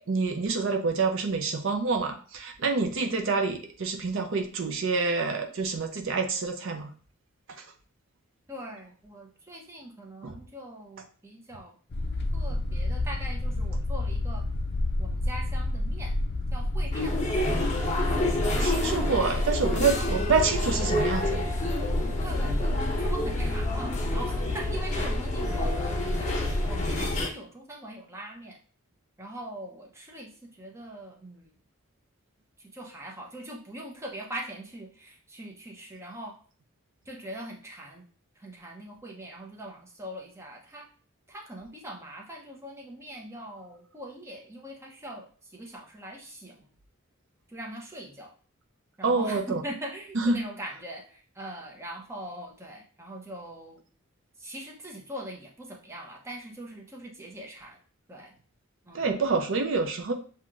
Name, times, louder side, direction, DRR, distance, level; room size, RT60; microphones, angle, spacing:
voice 1, 0.1-6.9 10.2-10.4 18.6-21.5 49.0-49.6 50.1-50.4 58.9-60.1, right 4 dB, 60° right, 5 dB, 0.6 m, -27 dB
voice 2, 8.5-11.7 12.3-14.4 15.0-16.1 16.5-18.1 18.9-19.1 19.9-20.3 22.2-28.6 29.2-31.5 32.6-36.3 37.1-38.0 38.4-40.8 41.3-46.7 47.5-48.3 49.0-53.8 54.4-57.8 58.1-58.3 58.9-59.1, right 1 dB, 15° right, -1 dB, 0.8 m, -42 dB
sound 1, 11.9-27.2, left 1 dB, 50° left, 0.5 m, -29 dB
sound 2, 16.9-27.3, left 1 dB, 35° left, 0.9 m, -31 dB
7.3 x 2.8 x 2.4 m, 0.42 s
head